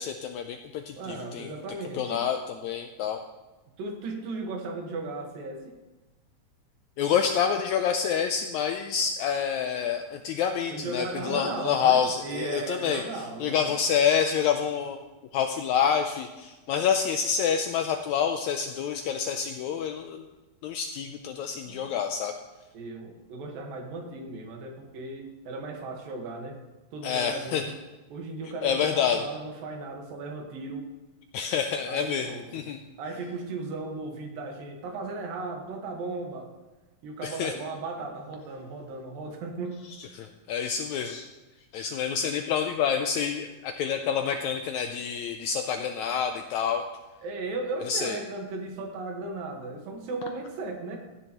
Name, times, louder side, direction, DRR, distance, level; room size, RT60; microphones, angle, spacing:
voice 1, 0.0-1.5 1.9-3.2 7.0-15.0 15.3-20.3 20.6-22.3 27.0-27.6 28.6-29.2 31.3-32.8 37.2-37.5 40.0-41.3 41.7-46.8 47.9-48.2, left 7 dB, 85° left, 6 dB, 1.6 m, -27 dB
voice 2, 1.0-2.3 3.8-5.8 10.7-13.8 21.6-21.9 22.7-26.6 26.9-27.7 28.1-30.9 31.9-32.5 33.0-36.5 37.0-39.8 47.2-51.0, right 3 dB, 90° right, 2 dB, 3.3 m, -36 dB
15.5 x 9.9 x 3.0 m, 1.1 s
omnidirectional pair, 3.9 m